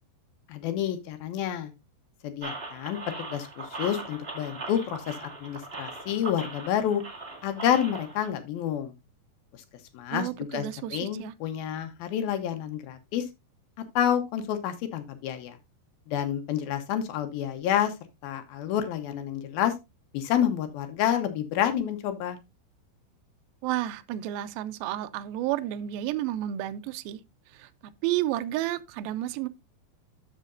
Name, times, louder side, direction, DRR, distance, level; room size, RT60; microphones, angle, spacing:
voice 1, 0.5-1.7 2.2-5.2 5.4-7.0 7.4-8.9 9.9-10.7 10.9-13.2 14.0-15.6 16.1-17.9 18.2-19.7 20.1-22.4, left 10 dB, 70° left, 2.6 m, -29 dB
sound 1, 2.4-8.3, right 3 dB, 35° right, 0.9 m, -40 dB
voice 2, 10.1-11.3 23.6-27.2 27.5-27.7 28.0-29.5, right 13 dB, 80° right, 2.2 m, -31 dB
13.0 x 5.7 x 2.5 m
omnidirectional pair, 4.8 m